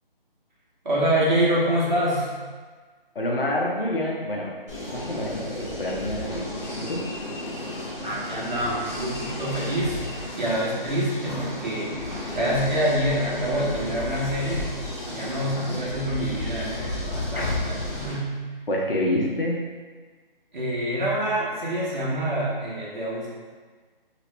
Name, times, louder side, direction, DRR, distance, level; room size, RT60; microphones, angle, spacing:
voice 1, 0.8-2.3 8.0-10.0 10.4-12.0 12.3-14.7 15.1-18.4 20.5-23.3, right 1 dB, 50° right, -6 dB, 1.2 m, -26 dB
voice 2, 3.1-4.5 4.9-6.4 6.8-7.1 15.6-15.8 17.3-17.5 18.7-19.5, left 1 dB, 70° left, -2 dB, 0.9 m, -27 dB
sound 1, 4.7-18.1, left 1 dB, 30° left, 0.9 m, -33 dB
2.9 x 2.9 x 3.2 m, 1.4 s
figure-of-eight pair, 165°, 29 cm